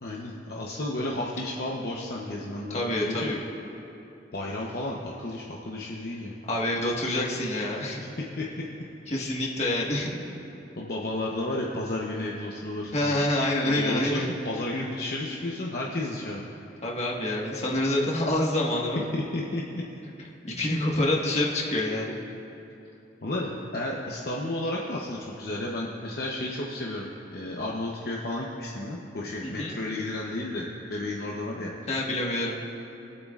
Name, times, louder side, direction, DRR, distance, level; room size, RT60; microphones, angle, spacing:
voice 1, 0.0-3.3 4.3-6.3 8.0-8.5 9.1-9.3 10.8-13.3 13.6-16.5 19.1-19.8 23.2-31.7, left 1 dB, 55° left, -3 dB, 0.9 m, -32 dB
voice 2, 2.7-3.4 6.5-8.0 9.1-10.1 12.9-14.3 16.8-19.0 20.4-22.2 29.4-29.7 31.9-32.5, left 1 dB, 40° left, -2 dB, 1.5 m, -27 dB
24.5 x 8.3 x 2.5 m, 2.9 s
head